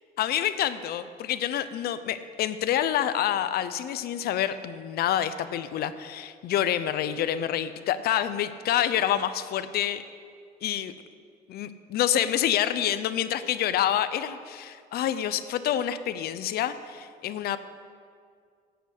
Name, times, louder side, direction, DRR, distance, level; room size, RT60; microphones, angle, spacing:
voice 1, 0.2-10.0 10.6-10.9 11.5-17.6, left 11 dB, 65° left, 13 dB, 0.7 m, -27 dB
11.0 x 8.0 x 8.2 m, 2.2 s
cardioid pair, 110°, 17 cm